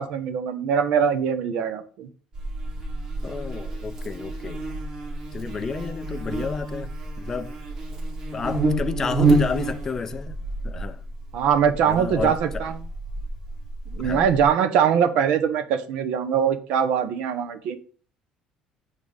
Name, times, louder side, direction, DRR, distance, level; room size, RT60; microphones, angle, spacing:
voice 1, 0.0-2.1 11.3-12.7 13.9-17.8, right 8 dB, 65° right, 0.8 m, -22 dB
Buzz, 2.3-14.5, right 2 dB, 40° right, 2.3 m, -28 dB
voice 2, 3.2-4.6 5.3-7.6 8.3-10.4 10.6-11.0 11.8-12.7 14.0-14.3, left 5 dB, 20° left, 0.5 m, -31 dB
8.3 x 3.7 x 5.3 m
cardioid pair, 160°, 2 cm